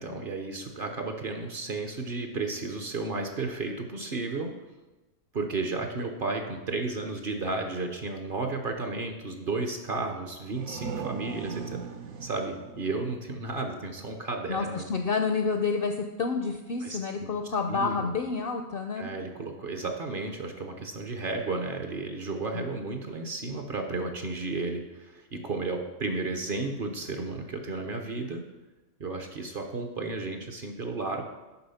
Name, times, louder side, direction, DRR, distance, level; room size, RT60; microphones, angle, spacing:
voice 1, 0.0-4.5 5.3-11.9 12.2-14.8 16.8-17.3 17.7-18.1 19.0-28.4 29.0-31.2, right 3 dB, 50° right, 4 dB, 0.7 m, -33 dB
sound 1, 10.3-13.9, right 6 dB, 90° right, 1.1 m, -39 dB
voice 2, 14.5-19.1 22.5-22.7, left 4 dB, 65° left, 5 dB, 0.5 m, -29 dB
6.9 x 5.4 x 5.6 m, 1.1 s
omnidirectional pair, 1.4 m